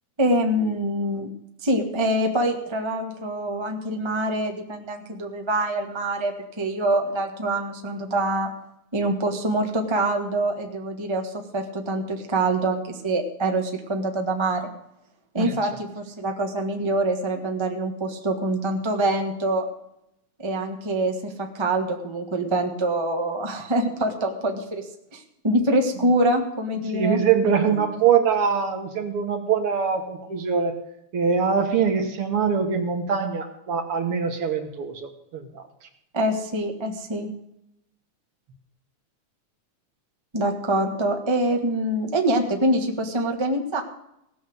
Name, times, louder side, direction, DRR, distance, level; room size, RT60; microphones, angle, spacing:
voice 1, 0.2-1.3 1.6-8.5 8.9-14.7 15.3-19.7 20.4-27.8 36.1-37.3 40.3-43.8, right 1 dB, 35° right, 3 dB, 0.4 m, -25 dB
voice 2, 26.9-30.7 31.1-35.6, right 6 dB, 55° right, 6 dB, 2.0 m, -23 dB
17.0 x 6.6 x 7.9 m, 0.81 s
omnidirectional pair, 3.5 m